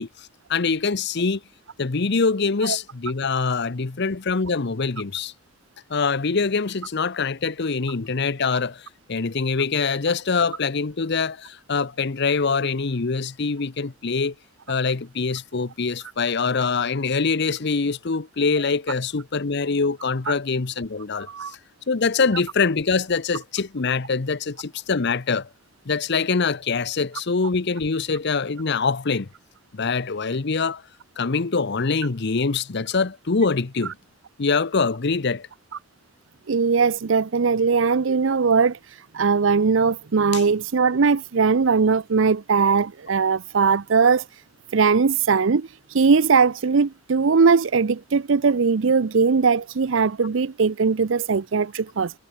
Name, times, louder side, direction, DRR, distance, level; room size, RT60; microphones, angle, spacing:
voice 1, 0.0-1.4 1.8-5.3 5.9-14.3 14.7-21.6 21.9-25.5 25.9-29.3 29.7-30.8 31.2-33.9 34.4-35.5 40.3-40.4, left 4 dB, 60° left, 0.8 m, -24 dB
voice 2, 36.5-38.8 39.1-44.2 44.7-45.7 45.9-52.1, right 5 dB, 70° right, 0.6 m, -20 dB
head